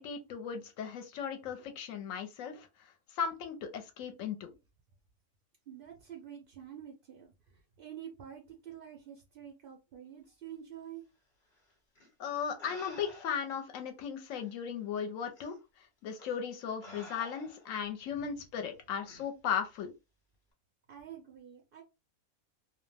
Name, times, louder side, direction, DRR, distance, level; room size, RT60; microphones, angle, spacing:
voice 1, 0.0-2.7 3.2-4.5 12.2-15.6 16.0-19.9, left 7 dB, 70° left, 0.9 m, -36 dB
voice 2, 5.7-11.0 18.1-18.4 20.9-21.8, right 9 dB, 65° right, 0.5 m, -48 dB
sound 1, 12.0-12.1 12.6-13.5 14.4-14.5 15.4-15.5 16.2-16.4 16.8-17.8 19.1-19.3, left 2 dB, 40° left, 1.0 m, -50 dB
2.5 x 2.1 x 3.2 m
omnidirectional pair, 1.5 m